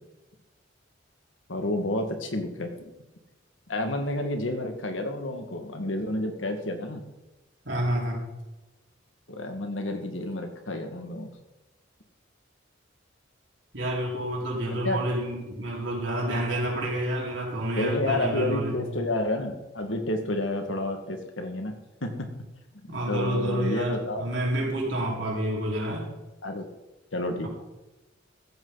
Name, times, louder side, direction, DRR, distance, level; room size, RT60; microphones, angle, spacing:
voice 1, 1.5-2.8 3.7-7.0 9.3-11.3 14.7-15.0 17.8-21.7 22.0-22.1 22.9-24.2 26.4-26.7 27.1-27.5, left 1 dB, 80° left, 5 dB, 2.0 m, -30 dB
voice 2, 7.6-8.3 13.7-18.8 22.9-26.1 27.4-27.5, right 1 dB, 70° right, -3 dB, 4.6 m, -29 dB
15.5 x 14.5 x 4.1 m, 1.1 s
head